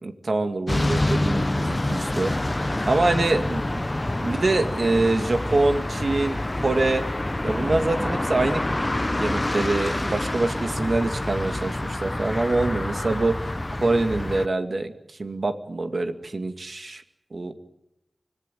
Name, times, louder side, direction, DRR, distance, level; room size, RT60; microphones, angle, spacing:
voice 1, 0.0-2.3 2.8-3.8 4.2-7.0 7.4-8.6 9.1-13.3 13.8-14.9 15.2-17.0 17.3-17.5, right 2 dB, 65° right, 7 dB, 2.2 m, -25 dB
sound 1, 0.7-14.5, left 1 dB, 30° left, 0.8 m, -27 dB
25.5 x 18.0 x 9.3 m, 0.87 s
wide cardioid pair, 50°, 0 cm